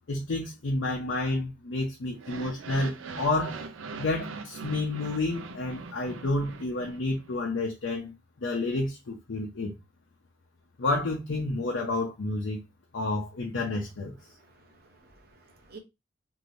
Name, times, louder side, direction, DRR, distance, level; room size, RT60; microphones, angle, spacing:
voice 1, 0.1-3.6 4.0-9.7 10.8-12.6 12.9-14.2, left 2 dB, 75° left, 0.6 m, -30 dB
sound 1, 2.1-7.3, right 4 dB, 85° right, 0.4 m, -41 dB
voice 2, 14.3-15.8, right 4 dB, 50° right, 0.7 m, -53 dB
3.1 x 2.6 x 2.5 m
head